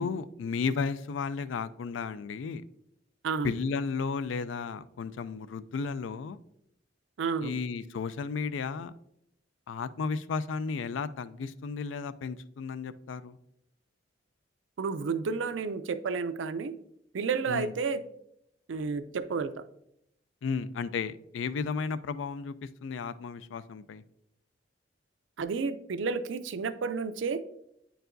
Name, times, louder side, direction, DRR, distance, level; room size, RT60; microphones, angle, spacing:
voice 1, 0.0-2.6 3.4-6.4 7.4-8.9 9.7-13.4 17.5-17.7 20.4-24.0, left 5 dB, 90° left, 15 dB, 0.4 m, -33 dB
voice 2, 3.2-3.5 7.2-7.6 14.8-16.8 17.1-18.0 18.7-19.5 25.4-27.4, right 5 dB, 85° right, 12 dB, 0.4 m, -31 dB
8.8 x 4.7 x 2.6 m, 0.77 s
head